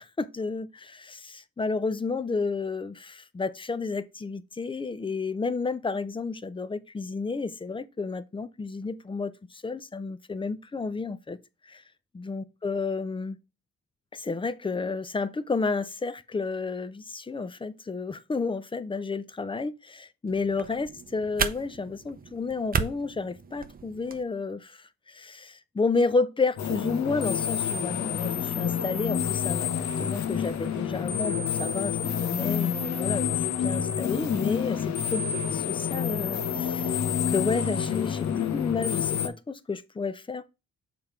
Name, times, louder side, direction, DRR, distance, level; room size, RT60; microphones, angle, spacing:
voice 1, 0.0-11.4 11.6-11.8 12.1-13.4 14.1-29.7 30.0-35.2 35.5-37.0 37.3-40.5, left 4 dB, 15° left, 0.5 m, -31 dB
sound 1, 20.3-24.2, right 6 dB, 30° right, 0.7 m, -34 dB
sound 2, 26.6-39.3, left 8 dB, 65° left, 1.0 m, -28 dB
6.8 x 3.8 x 4.3 m
cardioid pair, 90°, 30 cm